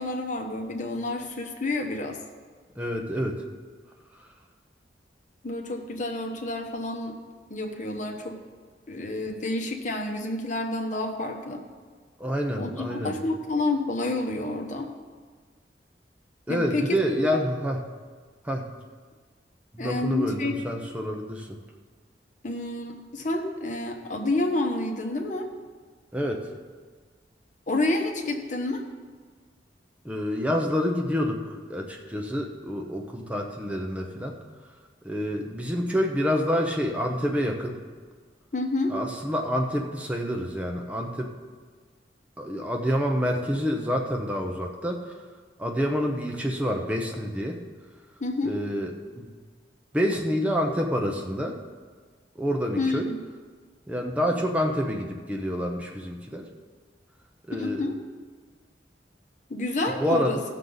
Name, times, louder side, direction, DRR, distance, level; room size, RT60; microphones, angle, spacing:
voice 1, 0.0-2.2 5.4-7.2 7.5-8.4 8.9-11.6 12.6-14.9 16.5-16.9 17.2-17.4 19.8-20.5 22.4-25.5 27.7-28.8 38.5-39.0 48.2-48.6 52.8-53.2 57.6-58.0 59.5-60.4, left 2 dB, 45° left, 3 dB, 1.1 m, -29 dB
voice 2, 2.8-3.4 12.2-13.1 16.5-17.8 18.4-18.7 19.7-21.5 26.1-26.4 30.0-34.3 35.0-37.8 38.9-41.3 42.4-45.2 45.6-47.6 48.4-49.3 49.9-51.6 52.4-53.1 53.9-56.4 57.5-57.8 60.0-60.4, equal, 10° right, 1 dB, 0.8 m, -27 dB
16.5 x 6.6 x 4.0 m, 1.5 s
head